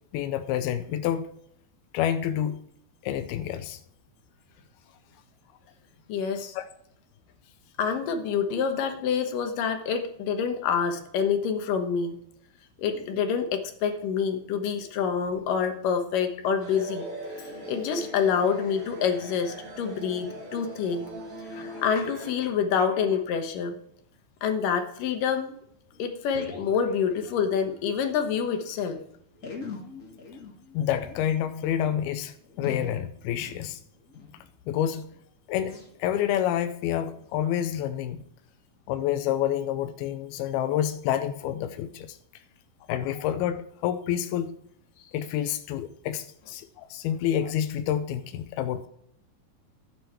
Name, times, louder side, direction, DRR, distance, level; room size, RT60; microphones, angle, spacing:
voice 1, 0.1-1.3 1.9-2.6 3.0-3.8 6.5-6.7 30.7-33.8 34.7-35.1 35.5-38.2 38.9-42.4 42.9-44.5 45.1-48.9, left 10 dB, 85° left, 9 dB, 2.6 m, -28 dB
voice 2, 6.1-6.6 7.8-12.2 12.8-17.1 17.4-21.0 21.5-23.8 24.4-25.5 26.0-29.0, left 7 dB, 70° left, 6 dB, 2.6 m, -27 dB
sound 1, 16.6-22.3, right 1 dB, 70° right, 5.0 m, -40 dB
sound 2, 25.5-25.6 25.9-28.1 28.3-28.4 28.6-28.7 29.3-34.4 34.8-35.2 35.6-35.9 36.4-36.6 37.1-37.3 37.9-38.0, left 4 dB, 50° left, 0.9 m, -43 dB
12.5 x 9.1 x 4.5 m, 0.68 s
omnidirectional pair, 4.4 m